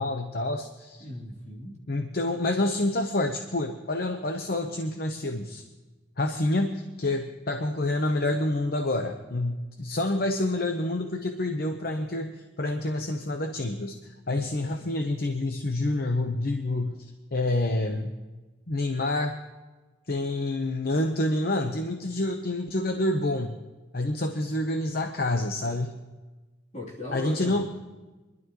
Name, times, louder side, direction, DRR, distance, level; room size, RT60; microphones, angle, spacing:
voice 1, 0.0-1.1 1.9-5.6 6.2-14.0 14.3-18.1 18.7-19.4 20.1-23.5 23.9-26.0 27.1-27.6, left 2 dB, 55° left, 5 dB, 0.9 m, -28 dB
voice 2, 1.0-1.7 14.3-14.7 26.7-27.6, left 2 dB, 40° left, -4 dB, 3.3 m, -39 dB
23.5 x 12.0 x 3.1 m, 1.2 s
head